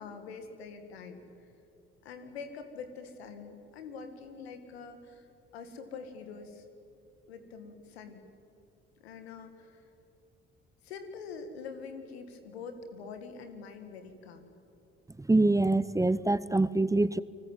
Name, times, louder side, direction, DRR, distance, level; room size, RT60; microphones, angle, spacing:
voice 1, 0.0-1.5 2.0-5.3 5.5-6.7 7.3-8.2 9.0-9.9 10.8-14.5, left 5 dB, 85° left, 8 dB, 2.1 m, -45 dB
voice 2, 15.2-17.2, right 2 dB, 10° right, 19 dB, 0.7 m, -25 dB
29.0 x 19.5 x 9.1 m, 2.6 s
hypercardioid pair, 50°, 31 cm